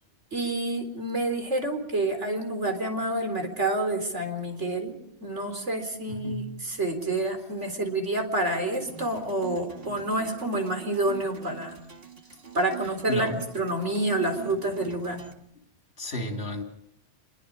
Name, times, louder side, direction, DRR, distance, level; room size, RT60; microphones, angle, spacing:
voice 1, 0.3-4.9 5.2-11.7 12.5-15.2, right 2 dB, 75° right, 6 dB, 4.4 m, -28 dB
voice 2, 6.1-6.6 13.1-13.4 16.0-16.6, left 1 dB, 60° left, 3 dB, 3.2 m, -33 dB
sound 1, 8.6-15.3, right 8 dB, 55° right, 2.3 m, -43 dB
28.0 x 22.5 x 5.0 m, 0.73 s
omnidirectional pair, 1.2 m